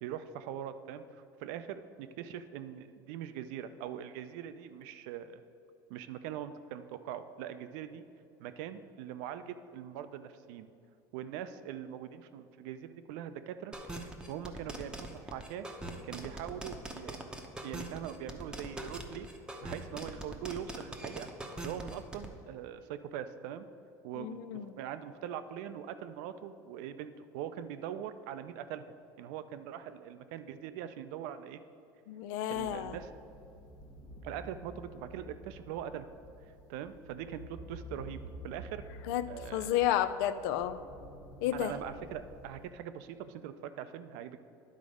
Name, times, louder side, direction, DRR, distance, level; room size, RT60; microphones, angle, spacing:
voice 1, 0.0-5.4 5.9-8.0 8.4-10.7 11.1-13.7 14.0-15.7 16.0-17.2 17.6-19.3 19.6-21.3 21.6-23.7 24.0-28.8 29.2-31.6 32.5-33.1 34.2-36.1 36.7-38.8 39.3-39.9 41.5-44.4, right 9 dB, 80° right, 11 dB, 0.5 m, -42 dB
sound 1, 13.7-22.3, right 1 dB, 10° right, 0.7 m, -42 dB
voice 2, 24.2-24.7 32.1-33.0 39.1-40.8 41.4-41.7, left 11 dB, 85° left, 12 dB, 0.4 m, -31 dB
sound 2, 32.5-42.7, equal, 65° left, 0.9 m, -50 dB
10.5 x 4.0 x 4.9 m, 2.6 s
supercardioid pair, 115°, 10 cm